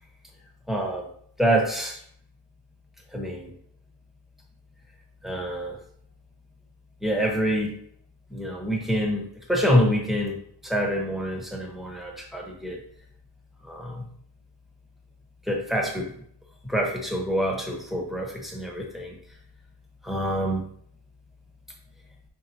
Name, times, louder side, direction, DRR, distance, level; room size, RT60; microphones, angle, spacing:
voice 1, 0.7-1.1 1.4-2.0 3.1-3.5 5.2-5.8 7.0-7.7 8.3-10.4 10.6-12.8 13.6-14.0 15.5-16.1 16.7-19.2 20.0-20.7, equal, ahead, 0 dB, 0.9 m, -26 dB
5.7 x 3.4 x 2.7 m, 0.63 s
wide cardioid pair, 160°, 42 cm